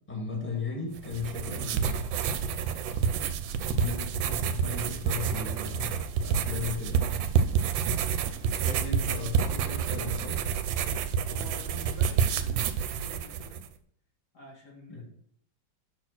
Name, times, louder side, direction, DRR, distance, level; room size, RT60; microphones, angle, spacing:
voice 1, 0.1-1.9 3.6-7.2 8.2-10.4 14.9-15.0, left 4 dB, 5° left, -1 dB, 1.9 m, -36 dB
sound 1, 1.0-13.7, right 7 dB, 80° right, 1.3 m, -29 dB
sound 2, 2.5-8.0, equal, 15° right, 2.1 m, -45 dB
voice 2, 11.3-13.6 14.3-15.0, left 2 dB, 55° left, -3 dB, 2.1 m, -47 dB
6.0 x 4.3 x 6.1 m, 0.64 s
omnidirectional pair, 2.1 m